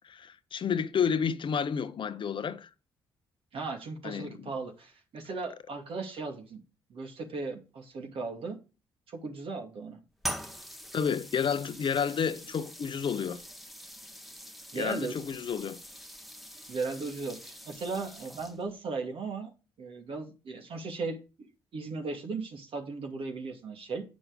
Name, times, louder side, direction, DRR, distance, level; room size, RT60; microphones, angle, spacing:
voice 1, 0.0-2.7 4.0-4.5 10.9-13.4 14.7-15.8, left 7 dB, 55° left, 0.9 m, -30 dB
voice 2, 3.5-6.6 6.9-8.6 9.1-10.0 14.7-15.2 16.7-19.5 19.8-24.0, right 4 dB, 60° right, 2.5 m, -37 dB
sound 1, 10.2-18.8, equal, ahead, 1.2 m, -44 dB
8.5 x 6.1 x 5.3 m
supercardioid pair, 50°, 10 cm